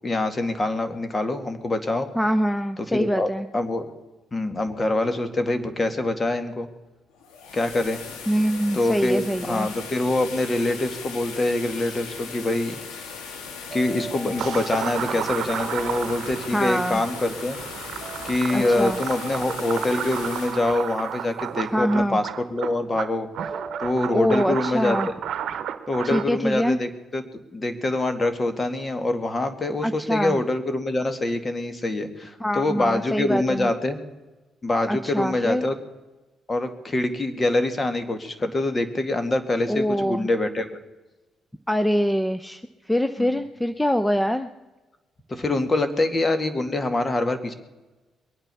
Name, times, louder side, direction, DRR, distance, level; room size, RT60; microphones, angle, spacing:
voice 1, 0.0-2.1 2.9-3.9 4.3-6.7 7.5-8.0 8.7-12.8 13.7-17.6 18.2-23.3 23.8-25.0 25.9-27.2 27.5-34.0 34.6-35.7 36.5-40.8 43.2-43.4 45.3-47.5, left 2 dB, 35° left, 9 dB, 2.1 m, -25 dB
voice 2, 2.1-3.5 8.3-9.7 16.5-17.0 18.5-19.0 21.7-22.2 24.1-25.1 26.0-26.8 29.8-30.4 32.4-33.7 34.9-35.7 39.7-40.3 41.7-42.6 42.9-44.5, equal, 10° left, 10 dB, 0.8 m, -24 dB
sound 1, 7.1-22.0, left 5 dB, 85° left, 1.9 m, -38 dB
sound 2, 13.7-16.9 18.0-21.8 22.9-26.1, right 3 dB, 30° right, 1.8 m, -39 dB
sound 3, 14.4-26.2, right 9 dB, 70° right, 0.9 m, -33 dB
22.0 x 9.1 x 7.0 m, 1.1 s
supercardioid pair, 60°, 0 cm